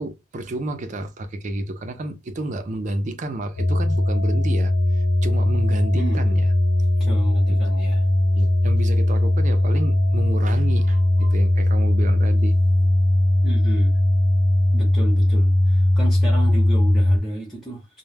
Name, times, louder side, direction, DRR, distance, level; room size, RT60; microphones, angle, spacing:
voice 1, 0.0-6.5 8.3-12.6, right 1 dB, 35° right, 0.4 m, -30 dB
sound 1, 3.6-17.2, left 1 dB, 55° left, 0.4 m, -19 dB
voice 2, 7.0-8.0 13.4-13.9 14.7-17.9, right 1 dB, ahead, 0.7 m, -31 dB
2.1 x 2.0 x 3.2 m
head